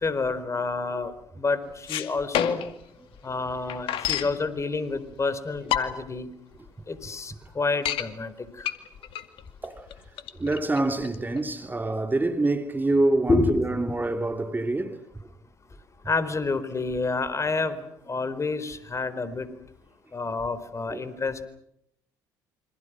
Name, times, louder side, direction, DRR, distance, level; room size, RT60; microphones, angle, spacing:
voice 1, 0.0-2.6 3.2-6.3 6.9-8.7 13.3-13.5 16.1-17.8 18.1-19.5 20.1-21.4, left 3 dB, 30° left, 4.3 m, -28 dB
sound 1, 1.7-2.8 3.2-3.3 3.5-4.4 5.1-5.2 5.6-6.2 6.7-6.8 7.0-7.1 7.5-8.1 8.6-11.5, left 11 dB, 65° left, 2.4 m, -29 dB
voice 2, 10.4-15.0 20.9-21.1, right 2 dB, 20° right, 3.0 m, -26 dB
28.5 x 26.0 x 6.3 m
hypercardioid pair, 60°, 10 cm